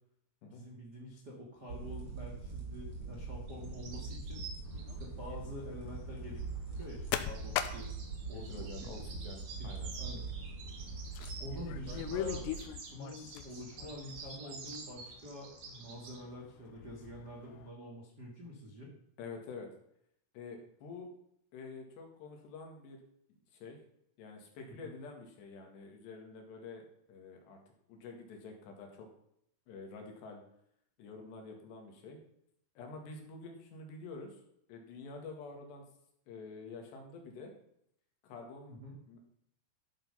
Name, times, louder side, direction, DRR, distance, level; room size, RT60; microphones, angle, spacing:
voice 1, 0.5-4.4 5.0-6.4 6.8-7.9 8.3-8.9 9.6-9.7 10.0-10.3 11.4-12.5 12.9-18.9 24.8-24.9 38.7-39.0, equal, 85° right, -2 dB, 0.9 m, -47 dB
sound 1, 1.7-12.6, right 4 dB, 35° right, 4.2 m, -43 dB
sound 2, 3.5-5.1 6.4-11.6 11.9-16.2, right 4 dB, 55° right, 2.9 m, -50 dB
sound 3, 4.6-17.7, left 11 dB, 85° left, 2.5 m, -44 dB
voice 2, 8.3-9.9 19.2-19.7 20.3-21.1 21.5-23.0 23.5-23.8 24.2-26.8 27.1-27.6 27.9-29.1 29.7-30.4 31.0-32.2 32.8-34.4 34.7-35.8 36.3-37.5 38.2-38.8 39.1-39.2, left 4 dB, 65° left, 3 dB, 3.8 m, -48 dB
13.0 x 7.3 x 5.6 m, 0.72 s
omnidirectional pair, 5.7 m